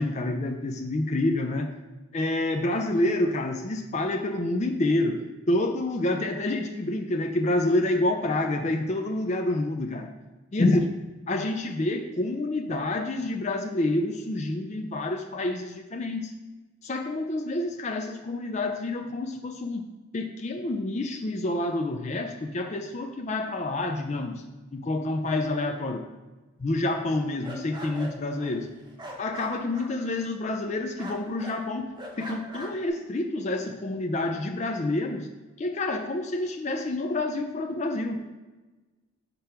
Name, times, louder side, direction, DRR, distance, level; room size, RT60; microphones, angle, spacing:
voice 1, 0.0-1.7 2.1-10.1 10.5-10.9 11.3-16.3 16.8-19.8 20.1-24.4 24.7-26.0 26.6-28.7 29.2-31.9 32.2-35.3 35.6-38.4, left 2 dB, 35° left, 4 dB, 0.4 m, -28 dB
sound 1, 27.1-30.7 31.0-31.6 31.9-32.9, equal, 20° right, 0.8 m, -42 dB
5.2 x 4.5 x 5.7 m, 1.2 s
head